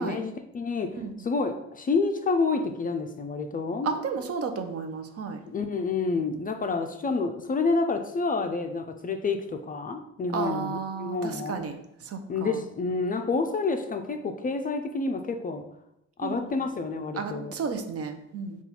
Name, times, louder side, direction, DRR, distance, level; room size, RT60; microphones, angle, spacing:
voice 1, 0.0-4.0 5.5-11.6 12.3-15.6 16.2-17.5, left 4 dB, 30° left, 5 dB, 0.4 m, -29 dB
voice 2, 3.8-5.4 10.3-12.6 16.2-16.4 17.1-18.6, right 5 dB, 50° right, 7 dB, 0.6 m, -33 dB
3.9 x 2.4 x 4.2 m, 0.80 s
cardioid pair, 90°, 30 cm